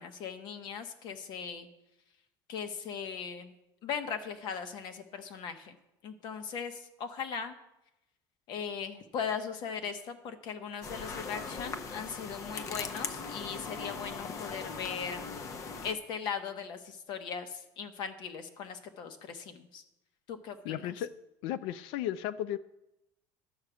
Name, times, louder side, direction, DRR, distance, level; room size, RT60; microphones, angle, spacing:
voice 1, 0.0-1.7 2.5-3.5 3.8-5.8 6.0-7.5 8.5-15.4 15.8-19.8 20.3-20.9, left 6 dB, 55° left, 1.2 m, -39 dB
sound 1, 10.8-15.9, left 5 dB, 35° left, 0.7 m, -40 dB
voice 2, 20.6-21.1 21.4-22.6, left 11 dB, 70° left, 0.4 m, -34 dB
11.5 x 4.9 x 8.0 m
cardioid pair, 140°, 9 cm